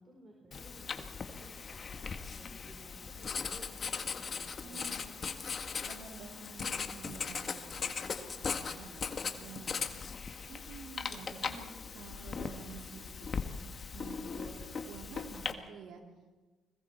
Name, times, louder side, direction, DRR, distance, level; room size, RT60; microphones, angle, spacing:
voice 1, 0.0-5.0 8.9-9.0 9.3-9.7, right 1 dB, 35° right, 0 dB, 4.6 m, -56 dB
Writing, 0.5-15.5, left 5 dB, 45° left, 1.7 m, -39 dB
voice 2, 4.6-5.1 5.8-8.9 9.3-9.8 10.5-13.3 13.9-16.0, right 5 dB, 80° right, 2 dB, 3.6 m, -50 dB
29.5 x 21.0 x 4.6 m, 1.2 s
cardioid pair, 90°, 0 cm